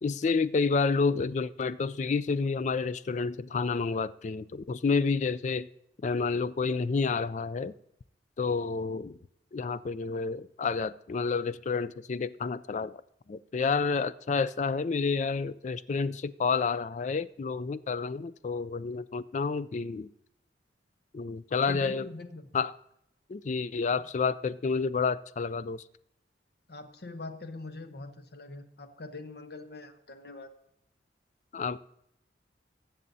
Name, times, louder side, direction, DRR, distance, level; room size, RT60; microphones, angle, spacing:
voice 1, 0.0-5.7 6.0-7.7 8.4-9.2 9.5-13.0 13.3-20.1 21.1-22.1 22.5-22.7 23.3-25.8 31.5-31.8, left 4 dB, 40° left, 16 dB, 0.3 m, -29 dB
voice 2, 21.7-22.5 26.7-30.5, left 2 dB, 60° left, 7 dB, 1.0 m, -43 dB
20.5 x 7.3 x 2.7 m, 0.76 s
head